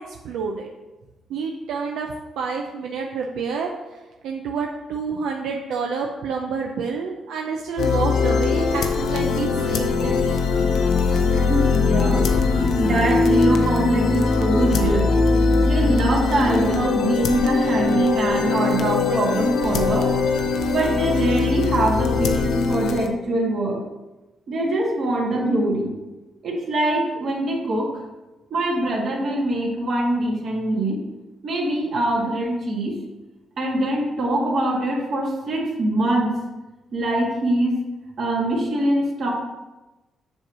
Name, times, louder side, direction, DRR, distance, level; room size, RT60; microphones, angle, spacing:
voice 1, 0.0-0.7 1.3-3.7 4.2-10.3, right 5 dB, 90° right, 1 dB, 0.6 m, -28 dB
sound 1, 7.8-23.1, left 4 dB, 75° left, 0.6 m, -21 dB
voice 2, 11.3-12.3 12.8-15.1 15.6-20.1 20.7-23.8 24.5-25.9 26.4-27.9 28.5-31.0 31.4-32.9 33.6-36.4 36.9-37.8 38.2-39.3, right 1 dB, 55° right, -2 dB, 1.8 m, -23 dB
7.5 x 3.1 x 6.1 m, 1.1 s
cardioid pair, 105°, 0 cm